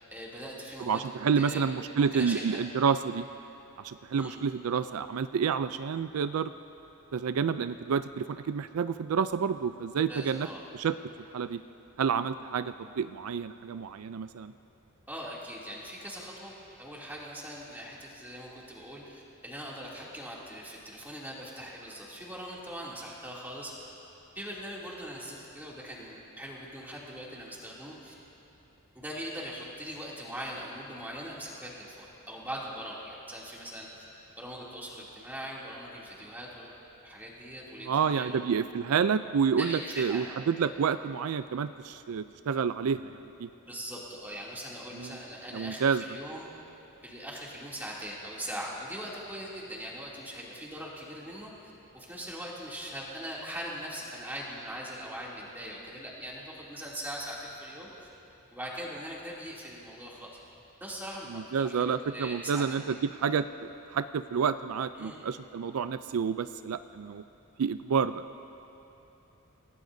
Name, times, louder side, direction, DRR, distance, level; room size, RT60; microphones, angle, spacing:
voice 1, 0.1-1.0 1.4-1.6 2.0-2.6 4.1-4.4 10.1-10.6 15.1-16.5 16.8-23.7 24.3-28.1 28.9-33.9 34.4-36.8 37.0-38.4 39.6-40.3 43.7-46.5 47.0-51.5 51.9-57.9 58.5-60.3 60.8-62.7 65.0-65.2, equal, 10° right, -5 dB, 2.7 m, -41 dB
voice 2, 0.9-3.2 3.8-6.5 7.1-10.5 10.7-11.0 11.3-11.6 12.0-14.5 37.8-43.5 44.9-45.2 45.5-46.0 61.3-67.2 67.6-68.2, right 6 dB, 75° right, 12 dB, 0.4 m, -29 dB
29.5 x 16.5 x 2.7 m, 2.9 s
head